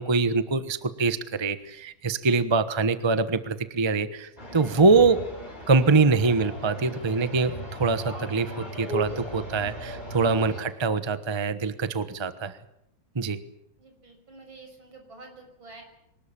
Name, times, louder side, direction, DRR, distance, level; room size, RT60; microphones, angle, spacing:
voice 1, 0.0-5.2 5.7-12.5 13.1-13.4, right 4 dB, 20° right, 12 dB, 0.9 m, -24 dB
sound 1, 4.4-10.7, right 1 dB, 20° left, 5.6 m, -37 dB
voice 2, 13.8-15.8, right 3 dB, 80° right, 4 dB, 6.9 m, -48 dB
24.5 x 19.5 x 8.9 m, 0.80 s
omnidirectional pair, 2.1 m